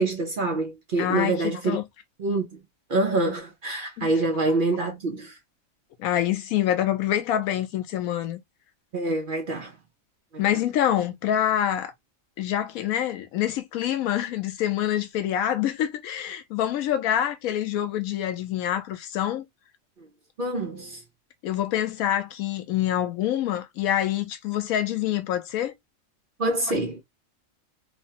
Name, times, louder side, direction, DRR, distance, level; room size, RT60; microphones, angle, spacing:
voice 1, 0.0-1.8 2.2-2.6 2.9-5.4 8.9-9.7 10.3-10.6 20.4-21.0 26.4-27.0, right 2 dB, 50° right, 0.6 m, -26 dB
voice 2, 1.0-1.8 4.0-4.1 6.0-8.4 10.4-11.9 12.4-19.4 21.4-25.7, left 11 dB, 85° left, 1.0 m, -26 dB
3.1 x 2.1 x 2.8 m
omnidirectional pair, 1.4 m